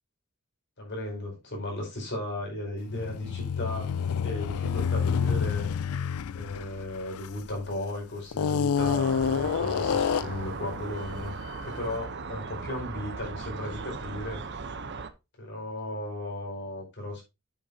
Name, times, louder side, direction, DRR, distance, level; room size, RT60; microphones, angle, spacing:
voice 1, 0.8-5.7 6.3-11.4 11.7-14.4 15.4-17.2, left 1 dB, 55° left, 5.2 m, -35 dB
sound 1, 2.9-7.7 8.3-10.5, left 7 dB, 90° left, 0.4 m, -28 dB
sound 2, 8.8-15.1, right 4 dB, 55° right, 0.8 m, -38 dB
8.8 x 8.0 x 2.7 m
head